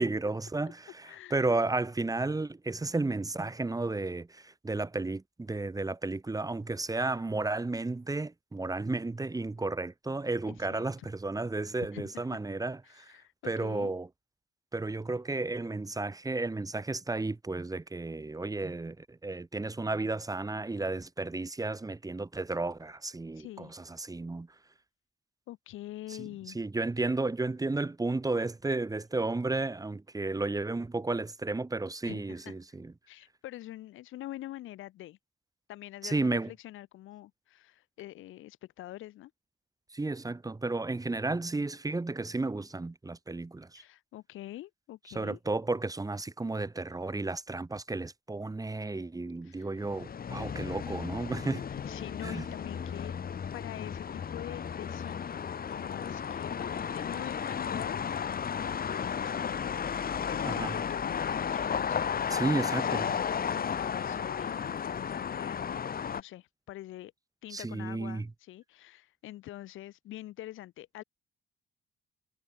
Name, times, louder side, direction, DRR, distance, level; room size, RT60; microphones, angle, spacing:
voice 1, 0.0-13.0 13.4-14.1 14.7-24.5 26.5-32.9 36.0-36.5 39.9-43.8 45.1-51.6 52.2-52.4 60.4-60.7 62.3-63.0 67.5-68.3, right 3 dB, 15° right, 1.8 m, -33 dB
voice 2, 1.0-1.4 10.5-10.8 11.9-12.4 12.8-13.9 23.3-23.7 25.5-26.6 32.0-32.5 33.1-35.2 35.7-39.3 43.7-45.4 49.4-49.7 51.7-53.2 53.5-55.4 55.7-67.1 67.4-71.0, left 15 dB, 85° left, 3.1 m, -45 dB
sound 1, 49.8-66.2, left 7 dB, 50° left, 3.1 m, -34 dB
cardioid pair, 90°, 20 cm